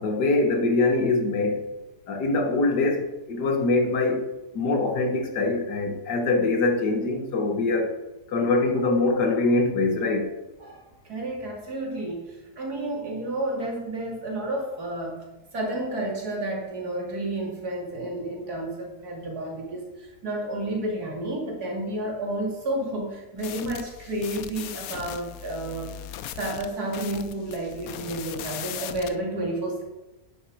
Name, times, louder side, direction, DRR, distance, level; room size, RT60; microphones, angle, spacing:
voice 1, 0.0-1.7 2.1-4.2 4.5-7.9 8.3-10.3, left 3 dB, 85° left, 1.9 m, -23 dB
voice 2, 10.6-15.2 15.5-25.9 26.4-29.8, right 1 dB, 70° right, 3.0 m, -31 dB
sound 1, 23.4-29.2, left 10 dB, 70° left, 1.0 m, -38 dB
11.0 x 8.5 x 4.7 m
omnidirectional pair, 1.7 m